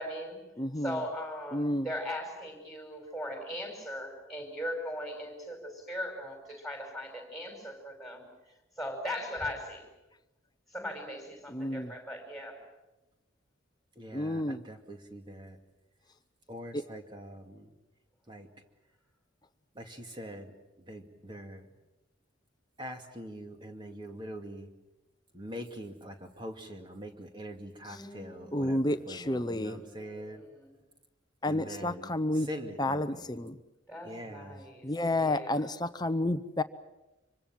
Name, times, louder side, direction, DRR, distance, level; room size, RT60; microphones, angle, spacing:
voice 1, 0.0-0.4 0.8-8.2 8.8-9.8 10.7-12.6 27.9-30.8 33.9-34.9 35.1-35.7, equal, ahead, 3 dB, 5.7 m, -39 dB
voice 2, 0.6-1.0 1.5-1.9 11.5-11.9 14.1-14.6 16.7-16.8 28.5-29.8 31.4-32.5 32.8-33.5 34.8-36.6, left 1 dB, 20° left, 11 dB, 0.8 m, -30 dB
voice 3, 14.0-15.6 16.5-17.7 18.3-18.5 19.8-20.5 20.9-21.6 22.8-24.7 25.3-30.4 31.4-33.3 34.0-34.6, equal, 25° right, 4 dB, 2.4 m, -44 dB
26.0 x 24.5 x 7.5 m, 1.0 s
head